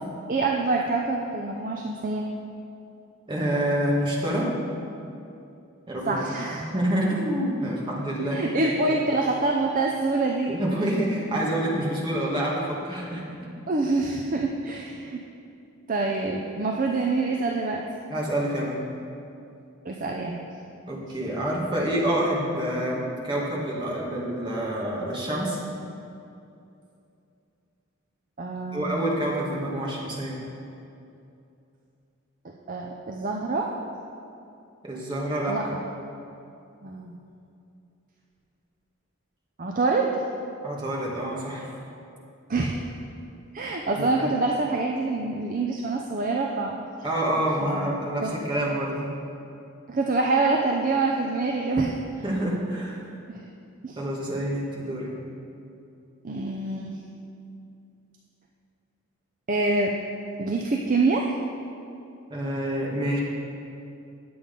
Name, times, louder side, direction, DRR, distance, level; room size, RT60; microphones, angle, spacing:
voice 1, 0.3-2.3 6.1-6.7 8.3-10.5 10.8-10.9 13.7-15.2 15.9-17.8 19.9-20.4 28.4-29.0 32.7-33.7 35.5-35.8 36.8-37.1 39.6-40.2 42.5-42.8 43.5-46.8 47.6-47.9 48.2-48.3 49.9-51.9 53.3-53.4 53.8-54.0 56.2-56.9 59.5-59.9 60.4-61.3, right 3 dB, 40° right, 0 dB, 0.5 m, -26 dB
voice 2, 3.3-4.5 5.9-6.2 6.5-8.6 8.9-9.0 10.5-13.5 18.1-18.8 20.9-25.6 28.7-30.4 34.8-35.6 40.6-41.7 44.0-44.3 47.0-49.1 52.2-53.0 54.0-55.1 62.3-63.2, right 1 dB, 20° right, -4 dB, 1.6 m, -27 dB
9.5 x 7.7 x 5.2 m, 2.6 s
head